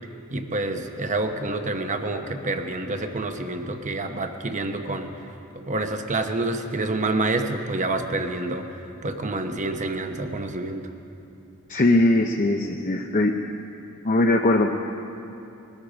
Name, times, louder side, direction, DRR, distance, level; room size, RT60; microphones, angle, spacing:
voice 1, 0.3-5.1 5.7-10.9, right 2 dB, 35° right, 6 dB, 0.9 m, -28 dB
voice 2, 11.7-13.3 14.0-14.7, left 2 dB, 40° left, 3 dB, 0.7 m, -20 dB
20.5 x 13.5 x 5.1 m, 2.8 s
head